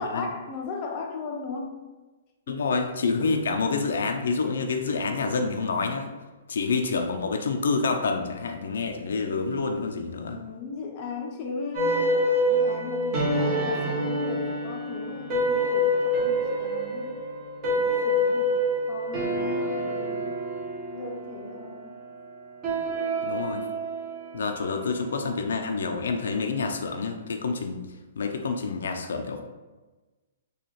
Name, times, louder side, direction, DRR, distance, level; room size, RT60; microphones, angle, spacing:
voice 1, 0.0-1.8 2.5-2.6 3.2-3.4 10.2-12.2 12.5-17.1 17.8-18.6 18.9-20.4 20.9-22.0, left 4 dB, 30° left, 1 dB, 0.5 m, -37 dB
voice 2, 2.5-6.1 6.5-10.4 23.2-23.6 24.3-27.8 28.2-29.4, left 4 dB, 85° left, 4 dB, 0.4 m, -28 dB
sound 1, 11.7-26.3, equal, 25° right, 0.9 m, -27 dB
4.2 x 2.3 x 3.1 m, 1.2 s
hypercardioid pair, 165°, 0 cm